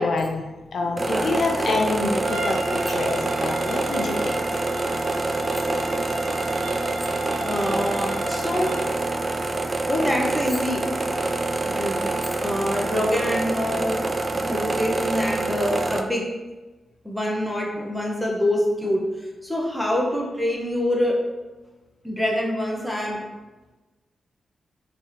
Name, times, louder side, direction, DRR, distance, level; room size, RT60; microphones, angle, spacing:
voice 1, 0.0-4.6, left 3 dB, 65° left, 2 dB, 0.4 m, -27 dB
voice 2, 0.9-1.4 1.7-1.8 6.0-6.1 6.5-6.7 7.3-8.8 9.9-10.9 11.7-12.1 12.4-14.0 14.3-16.3 17.0-19.1 19.4-21.2 22.0-23.2, left 1 dB, ahead, -1 dB, 0.7 m, -25 dB
sound 1, 1.0-16.0, right 2 dB, 35° right, 0.3 m, -26 dB
Bowed string instrument, 2.2-9.0, right 1 dB, 90° right, 1.0 m, -34 dB
3.4 x 2.9 x 3.3 m, 1.2 s
cardioid pair, 80°, 0 cm